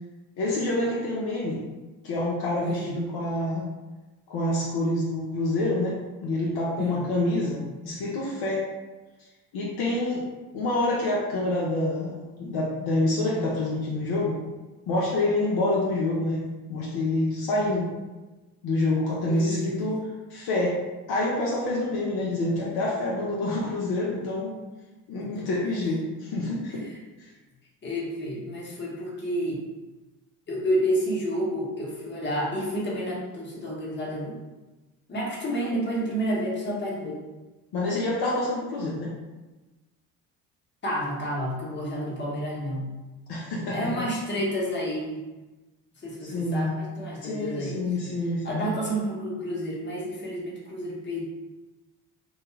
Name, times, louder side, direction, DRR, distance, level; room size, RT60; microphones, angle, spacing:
voice 1, 0.4-1.6 2.0-3.7 4.3-8.7 9.5-10.3 10.5-14.4 14.9-16.4 16.7-17.9 18.6-20.0 20.3-20.8 21.1-24.6 25.1-26.0 26.3-26.8 27.2-27.3 37.7-39.1 43.3-43.9 46.3-46.7 47.2-48.7, left 2 dB, 60° left, -5 dB, 0.7 m, -27 dB
voice 2, 2.6-3.0 6.8-7.1 19.3-19.7 25.2-25.5 26.7-26.9 27.8-29.7 30.5-34.3 35.1-37.2 40.8-43.0 43.7-45.3 46.0-48.0 48.4-51.2, equal, 25° left, -4 dB, 1.0 m, -30 dB
2.3 x 2.3 x 3.0 m, 1.2 s
hypercardioid pair, 60°, 44 cm